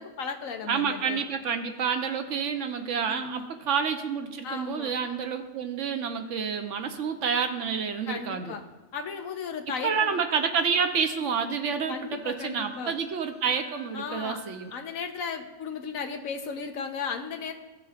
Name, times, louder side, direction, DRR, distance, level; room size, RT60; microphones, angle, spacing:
voice 1, 0.0-1.2 3.1-3.5 4.4-4.9 8.1-8.6 8.9-10.2 11.3-11.6 11.9-12.9 13.9-14.4 14.7-17.5, left 5 dB, 85° left, 6 dB, 1.2 m, -35 dB
voice 2, 0.7-8.6 9.8-14.7, right 6 dB, 65° right, 6 dB, 1.0 m, -29 dB
Wind instrument woodwind instrument, 12.1-14.9, right 2 dB, 60° left, 2.0 m, -53 dB
16.5 x 6.5 x 2.4 m, 1.1 s
omnidirectional pair, 1.4 m